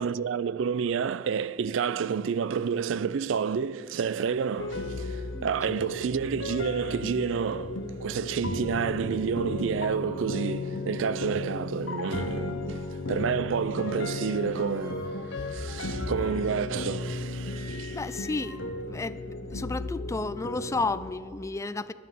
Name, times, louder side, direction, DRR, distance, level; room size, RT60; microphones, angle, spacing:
voice 1, 0.0-18.0, right 6 dB, 70° right, 0.4 m, -29 dB
sound 1, 4.4-4.8 5.5-5.6 6.9-7.6 8.0-8.2 8.6-8.8 9.4-9.7 10.4-11.1 12.1-12.6 13.5-14.1 14.7-17.2 17.4-19.8, left 1 dB, 15° right, 3.0 m, -51 dB
sound 2, 4.6-21.1, left 2 dB, 65° left, 0.9 m, -35 dB
voice 2, 17.9-18.6 18.9-21.9, left 3 dB, 15° left, 0.4 m, -32 dB
11.0 x 10.5 x 8.4 m
head